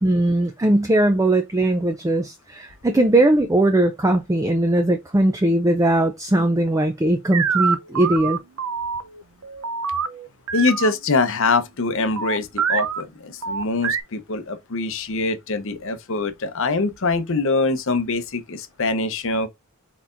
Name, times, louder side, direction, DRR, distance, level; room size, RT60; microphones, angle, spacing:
voice 1, 0.0-8.4, right 1 dB, 15° right, 0.4 m, -19 dB
sound 1, 7.3-10.9 12.2-13.0 13.4-14.0, right 6 dB, 75° right, 0.6 m, -25 dB
voice 2, 10.5-19.5, left 3 dB, 65° left, 0.8 m, -23 dB
4.4 x 4.2 x 2.5 m
head